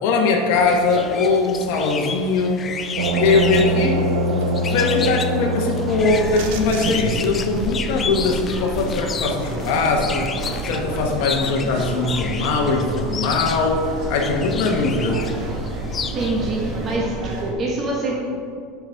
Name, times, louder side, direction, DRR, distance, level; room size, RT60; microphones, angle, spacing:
voice 1, 0.0-2.7 3.2-15.3, left 4 dB, 65° left, 0 dB, 0.9 m, -21 dB
sound 1, 0.5-17.0, left 6 dB, 25° left, 0.4 m, -32 dB
sound 2, 3.0-7.5, right 1 dB, 80° right, 0.9 m, -24 dB
sound 3, 5.9-17.5, right 3 dB, 50° right, 0.9 m, -29 dB
voice 2, 16.1-18.1, right 2 dB, 30° right, -3 dB, 1.2 m, -25 dB
9.4 x 5.8 x 3.4 m, 2.2 s
supercardioid pair, 145°, 0 cm